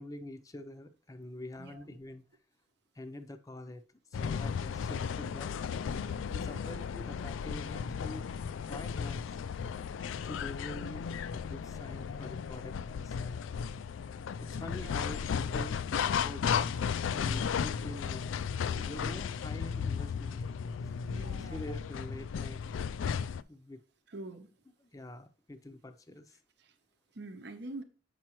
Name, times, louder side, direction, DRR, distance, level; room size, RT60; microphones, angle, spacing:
voice 1, 0.0-2.3 3.0-3.8 4.1-5.5 6.3-8.3 8.7-9.3 10.2-13.4 14.4-16.8 17.1-18.2 18.8-21.0 21.2-22.6 23.5-23.8 24.9-26.4, left 1 dB, 20° left, 0.6 m, -46 dB
voice 2, 1.6-2.0 6.3-6.7 14.6-15.0 18.8-18.9 21.1-21.6 24.1-24.5 26.6-26.7 27.1-27.8, right 2 dB, 60° right, 0.8 m, -46 dB
sound 1, 4.1-23.4, left 7 dB, 85° left, 0.3 m, -35 dB
8.3 x 6.0 x 3.0 m
head